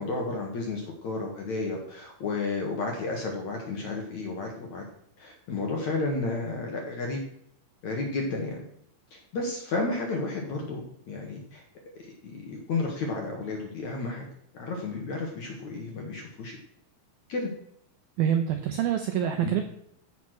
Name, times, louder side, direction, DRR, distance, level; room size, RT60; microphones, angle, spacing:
voice 1, 0.0-4.8 5.2-7.2 7.8-8.6 9.1-11.6 12.0-14.2 14.5-16.5 17.3-17.5 19.4-19.6, left 3 dB, 55° left, 0 dB, 2.2 m, -32 dB
voice 2, 18.2-19.6, right 9 dB, 80° right, 6 dB, 2.1 m, -26 dB
14.5 x 5.8 x 6.4 m, 0.69 s
omnidirectional pair, 5.4 m